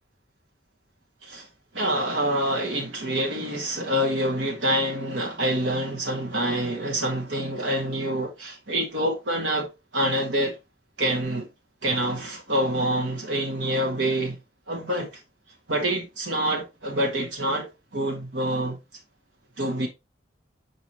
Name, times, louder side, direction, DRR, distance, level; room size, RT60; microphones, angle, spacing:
voice 1, 1.7-10.6 11.0-11.5 11.8-14.4 14.7-15.1 15.7-18.8 19.6-19.9, right 1 dB, 80° right, 1.7 m, -26 dB
7.1 x 4.8 x 3.0 m
head